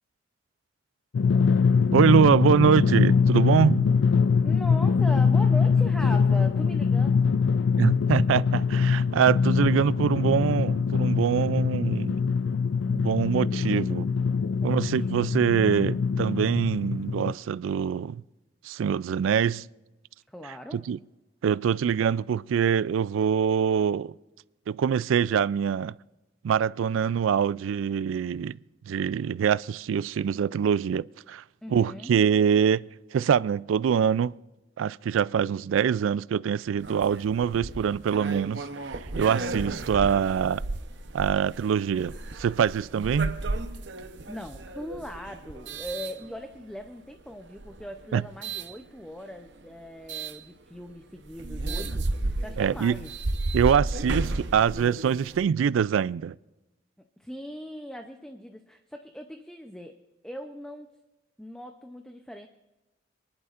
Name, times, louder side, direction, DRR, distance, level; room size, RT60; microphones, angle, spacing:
Drum, 1.1-17.3, left 5 dB, 70° left, 0.4 m, -23 dB
voice 1, 1.9-3.9 7.8-12.2 12.9-14.1 14.6-18.2 18.6-19.7 20.7-21.0 21.4-24.1 24.7-25.9 26.4-28.6 28.9-31.4 31.7-34.3 34.8-40.6 41.1-43.4 48.1-48.2 52.6-52.9 53.5-56.4, right 7 dB, 90° right, 0.3 m, -24 dB
voice 2, 4.4-7.2 14.6-15.2 20.3-20.9 31.6-32.1 44.3-53.1 57.2-59.9 60.2-60.9 61.4-62.5, equal, 5° left, 0.6 m, -40 dB
sound 1, 36.8-46.8 47.5-48.7 50.1-50.4 50.9-51.0 51.3-55.4, right 2 dB, 65° right, 0.9 m, -33 dB
27.5 x 11.0 x 2.5 m
head